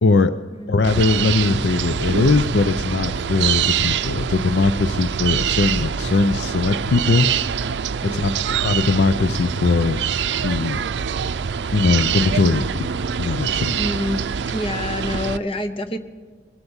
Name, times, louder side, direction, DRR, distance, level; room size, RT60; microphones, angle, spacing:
voice 1, 0.0-0.3 0.7-7.3 8.0-10.0 10.4-10.8 11.7-12.9 13.2-13.7, left 3 dB, 80° left, 11 dB, 0.5 m, -20 dB
sound 1, 0.8-15.4, right 7 dB, 90° right, 0.5 m, -24 dB
voice 2, 8.0-8.4 13.7-14.2 14.5-16.0, left 1 dB, 30° left, 9 dB, 0.8 m, -27 dB
22.0 x 7.9 x 7.1 m, 1.6 s
head